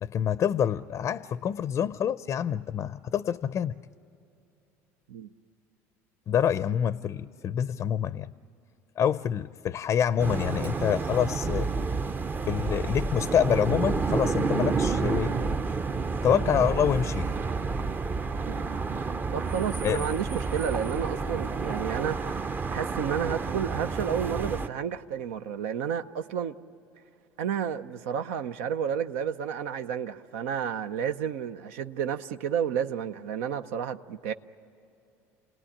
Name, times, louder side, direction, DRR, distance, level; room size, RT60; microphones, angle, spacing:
voice 1, 0.0-3.7 6.3-8.3 9.0-11.7 12.5-15.5 16.2-17.3 19.8-20.1, left 9 dB, 40° left, 15 dB, 0.5 m, -26 dB
sound 1, 10.2-24.7, right 4 dB, 25° right, 0.6 m, -30 dB
voice 2, 19.3-26.5 27.4-34.3, right 8 dB, 80° right, 9 dB, 0.7 m, -31 dB
28.5 x 18.5 x 10.0 m, 2.8 s
supercardioid pair, 95°, 8 cm